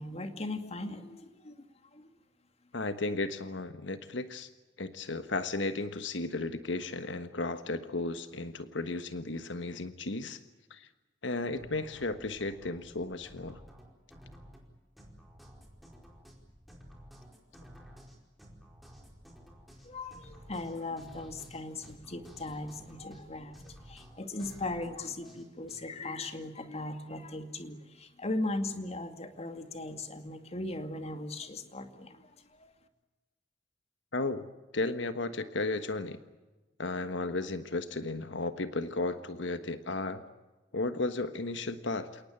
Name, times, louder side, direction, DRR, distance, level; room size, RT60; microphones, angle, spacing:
voice 1, 0.0-1.6 1.9-2.1 19.8-32.7, left 2 dB, 35° left, 7 dB, 2.3 m, -38 dB
voice 2, 2.7-4.5 4.8-10.4 10.7-10.9 11.2-13.6 34.1-34.5 34.7-36.2 36.8-40.2 40.7-42.2, left 2 dB, 90° left, 10 dB, 1.4 m, -34 dB
sound 1, 11.5-25.8, equal, ahead, 4.7 m, -53 dB
29.0 x 18.5 x 8.9 m, 1.2 s
head